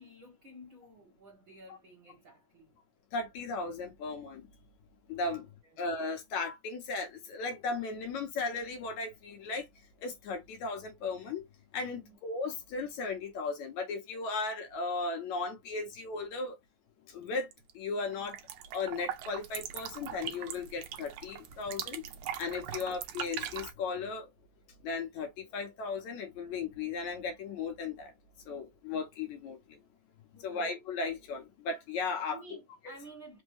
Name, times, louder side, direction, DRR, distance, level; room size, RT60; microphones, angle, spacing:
voice 1, 0.0-2.7 5.3-5.8 11.9-12.2 22.7-23.0 30.3-30.7 32.2-33.4, right 1 dB, 50° right, 1.6 m, -53 dB
voice 2, 3.1-4.5 5.1-5.5 5.8-9.7 10.0-11.4 11.7-16.6 17.1-17.5 17.7-18.4 18.7-22.0 22.4-24.3 24.8-28.1 28.5-29.8 30.4-32.4 32.9-33.0, left 4 dB, 70° left, 2.0 m, -36 dB
sound 1, 17.3-17.7 18.0-23.7, right 10 dB, 75° right, 1.8 m, -41 dB
5.3 x 2.3 x 3.1 m
omnidirectional pair, 4.0 m